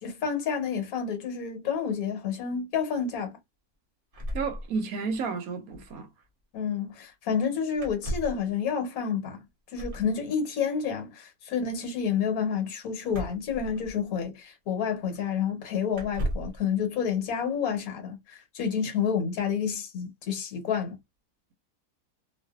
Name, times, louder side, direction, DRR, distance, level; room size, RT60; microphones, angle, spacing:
voice 1, 0.0-3.4 6.5-9.4 9.7-21.0, left 7 dB, 70° left, 1.3 m, -29 dB
sound 1, 4.1-5.2 5.5-5.6 5.7-5.9 7.8-8.5 9.7-10.1 13.1-14.2 15.1-15.2 15.9-16.6, equal, 45° right, 0.9 m, -35 dB
voice 2, 4.3-6.1, right 5 dB, 70° right, 1.0 m, -31 dB
2.5 x 2.5 x 2.3 m
omnidirectional pair, 1.6 m